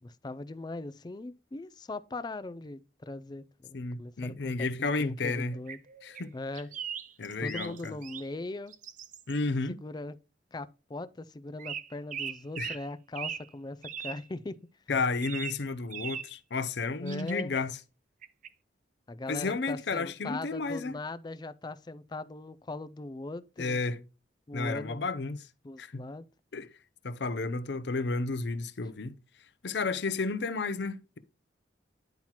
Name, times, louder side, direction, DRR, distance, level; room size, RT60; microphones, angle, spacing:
voice 1, 0.0-5.8 6.3-6.7 7.4-8.7 9.7-10.2 10.5-14.6 17.0-17.6 19.1-23.8 24.5-25.1 25.6-26.3, left 2 dB, 25° left, 0.4 m, -40 dB
voice 2, 3.7-5.6 6.0-6.3 7.2-7.9 9.3-9.8 12.6-12.8 14.9-17.8 19.3-21.0 23.6-24.0 24.5-25.4 25.8-26.1 26.5-26.7 27.0-29.1 29.6-31.2, left 3 dB, 65° left, 0.6 m, -32 dB
sound 1, 5.2-6.3 6.5-8.3 8.7-9.4 11.6-12.9 13.1-13.5 13.8-14.2 15.2-15.6 15.9-16.3 17.1-17.6 18.2-18.5, right 8 dB, 45° right, 0.5 m, -40 dB
10.5 x 5.6 x 3.0 m
head